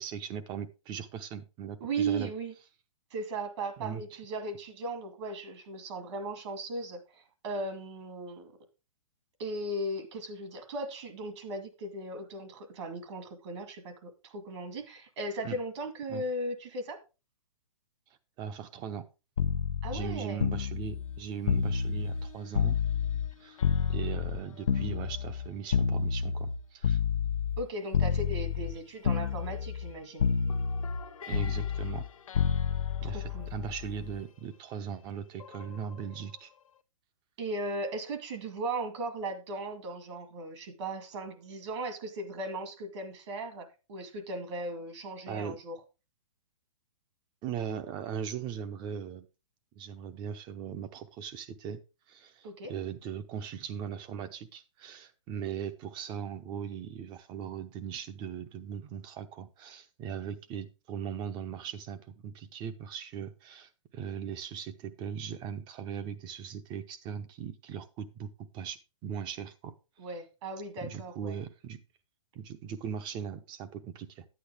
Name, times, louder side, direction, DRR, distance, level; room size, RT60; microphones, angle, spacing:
voice 1, 0.0-2.3 3.8-4.0 15.4-15.6 16.1-16.2 18.4-19.1 19.9-22.8 23.4-23.6 23.9-27.0 31.3-32.1 33.0-36.5 45.3-45.6 47.4-49.3 49.7-51.8 52.1-69.7 70.8-71.8 72.3-74.3, right 8 dB, 25° right, 0.9 m, -39 dB
voice 2, 1.8-2.5 3.1-8.6 9.4-17.0 19.8-20.4 27.6-30.3 33.0-33.5 37.4-45.8 52.4-52.7 70.0-71.4, right 2 dB, 55° right, 2.3 m, -37 dB
sound 1, 19.4-23.3 23.6-27.6 27.9-28.8 29.0-29.9 30.2-34.2 35.4-35.6, left 6 dB, 80° left, 0.9 m, -30 dB
9.5 x 8.7 x 3.5 m
hypercardioid pair, 135°, 17 cm